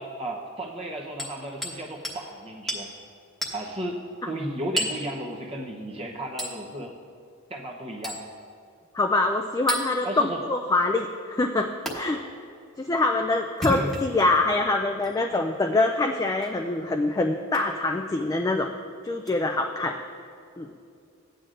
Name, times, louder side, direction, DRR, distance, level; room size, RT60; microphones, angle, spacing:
voice 1, 0.0-2.9 3.5-4.0 4.3-6.9 7.5-8.2 10.0-10.4 13.7-13.9, right 1 dB, 30° right, -1 dB, 0.8 m, -34 dB
Hammer, 1.2-1.8 2.0-2.2 2.7-2.9 3.4-3.6 4.8-5.0 6.4-6.6 8.0-8.2 9.7-9.9 11.9-12.0 13.5-14.2 15.0-15.1 16.4-16.6 17.5-17.7 19.2-19.3, equal, ahead, 1.1 m, -32 dB
voice 2, 8.9-12.2 12.8-18.7 19.0-20.0 20.6-20.7, left 2 dB, 15° left, 3 dB, 0.3 m, -25 dB
14.5 x 9.2 x 2.5 m, 2.3 s
head